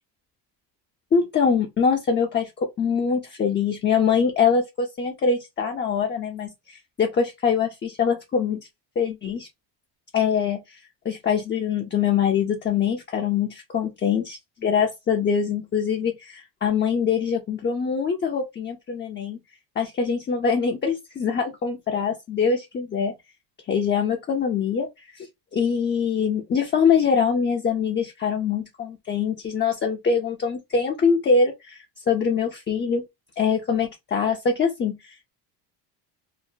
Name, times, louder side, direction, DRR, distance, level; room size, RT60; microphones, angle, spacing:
voice 1, 1.1-8.6 9.0-9.5 10.1-10.8 11.0-19.4 19.8-23.1 23.7-24.9 25.1-33.0 33.4-35.3, left 6 dB, 25° left, 0.5 m, -23 dB
2.9 x 2.0 x 2.4 m
cardioid pair, 105°, 46 cm